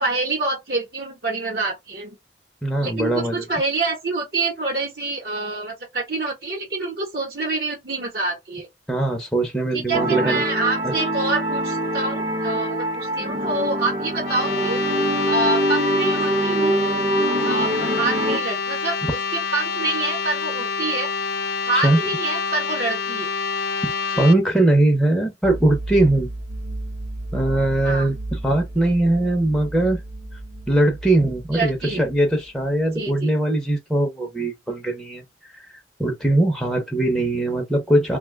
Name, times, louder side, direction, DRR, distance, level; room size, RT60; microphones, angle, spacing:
voice 1, 0.0-2.2 2.8-8.7 9.7-14.8 15.3-16.8 17.4-21.1 21.6-23.3 24.1-24.3 27.8-28.1 31.5-32.1 32.9-33.3, right 3 dB, 60° right, 1.0 m, -26 dB
voice 2, 2.6-3.4 8.9-10.4 10.8-10.9 21.8-22.0 23.8-23.9 24.2-26.3 27.3-28.2 28.4-30.0 30.7-38.2, right 1 dB, ahead, 0.5 m, -20 dB
sound 1, 9.9-18.4, right 1 dB, 35° right, 0.7 m, -24 dB
sound 2, 14.2-24.4, left 5 dB, 55° left, 0.4 m, -27 dB
sound 3, 25.4-32.8, right 2 dB, 80° right, 0.8 m, -33 dB
2.7 x 2.2 x 3.2 m
head